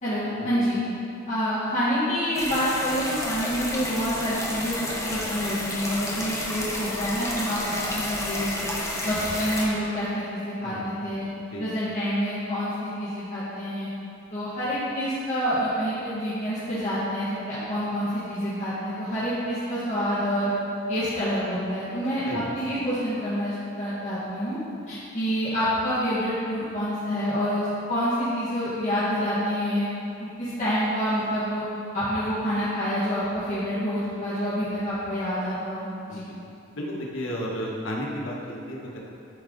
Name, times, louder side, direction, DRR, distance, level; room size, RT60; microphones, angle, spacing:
voice 1, 0.0-0.8 1.3-8.5 9.0-11.3 11.6-13.9 14.3-20.5 20.9-24.6 24.9-29.9 30.2-31.6 31.9-36.2, equal, 40° left, -12 dB, 1.8 m, -27 dB
sound 1, 2.3-9.7, left 1 dB, 15° left, 1.0 m, -31 dB
voice 2, 36.7-39.0, equal, 90° left, -3 dB, 1.3 m, -32 dB
11.5 x 4.7 x 4.0 m, 2.7 s
head